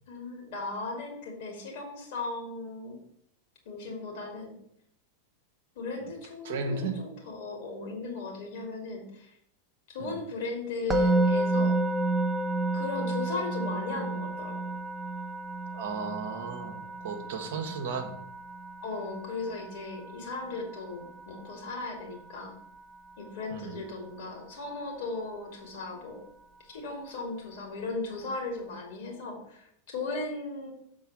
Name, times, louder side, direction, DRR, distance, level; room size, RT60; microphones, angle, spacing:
voice 1, 0.1-3.0 3.7-4.6 5.8-9.4 9.9-11.8 12.7-14.6 18.8-22.5 23.2-26.3 26.6-30.7, left 3 dB, 55° left, 1 dB, 2.4 m, -37 dB
voice 2, 6.4-7.0 10.0-10.2 15.7-18.2 23.5-23.8, right 4 dB, 55° right, 5 dB, 1.1 m, -35 dB
Musical instrument, 10.9-22.0, right 2 dB, 10° right, 0.8 m, -31 dB
6.8 x 3.9 x 6.4 m, 0.71 s
figure-of-eight pair, 90°, 0 cm